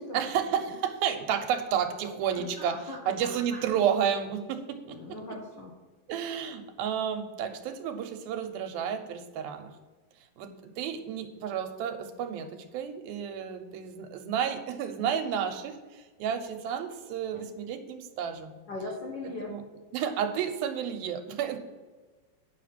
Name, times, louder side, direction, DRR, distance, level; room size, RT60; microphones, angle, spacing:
voice 1, 0.1-5.2 6.1-9.7 10.4-10.5 10.8-18.5 19.4-19.6 19.9-21.6, right 8 dB, 80° right, 6 dB, 2.6 m, -31 dB
voice 2, 2.6-3.7 4.8-5.7 18.7-19.5, left 2 dB, 65° left, -2 dB, 1.0 m, -40 dB
9.9 x 5.9 x 5.8 m, 1.3 s
omnidirectional pair, 4.3 m